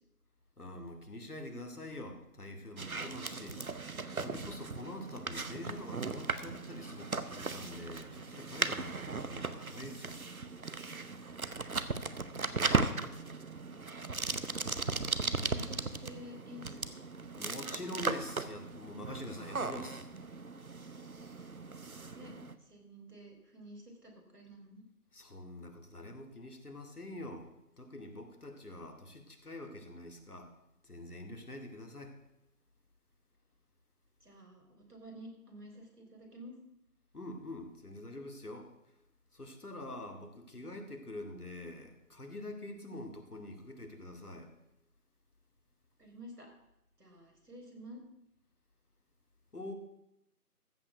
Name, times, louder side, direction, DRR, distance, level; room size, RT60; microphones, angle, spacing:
voice 1, 0.6-3.6 4.1-10.2 17.4-20.1 25.1-27.5 27.8-30.5 30.8-32.1 37.1-38.7 39.3-44.5 49.5-49.7, left 1 dB, 70° left, 5 dB, 2.3 m, -45 dB
sound 1, 2.8-22.6, right 3 dB, 65° right, 0.9 m, -37 dB
voice 2, 12.8-13.6 15.3-17.0 21.8-24.9 34.2-36.5 46.0-46.5 47.0-48.0, equal, 80° right, 1 dB, 4.1 m, -52 dB
14.5 x 5.2 x 8.0 m, 0.86 s
figure-of-eight pair, 175°, 46 cm